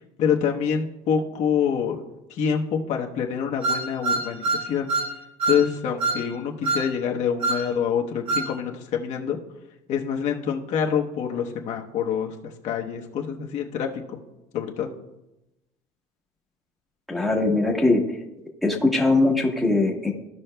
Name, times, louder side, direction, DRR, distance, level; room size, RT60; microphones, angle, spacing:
voice 1, 0.2-2.0 2.3-4.9 5.5-9.4 9.9-14.2 14.5-14.9, left 7 dB, 50° left, 1 dB, 0.9 m, -26 dB
sound 1, 3.6-5.1 5.4-5.6 6.0-6.2 6.6-6.9 7.4-7.6 8.3-8.5, right 3 dB, 40° right, 1.4 m, -25 dB
voice 2, 17.1-18.0 18.6-20.1, left 2 dB, ahead, -2 dB, 1.0 m, -21 dB
15.0 x 5.4 x 2.2 m, 0.95 s
cardioid pair, 155°, 15 cm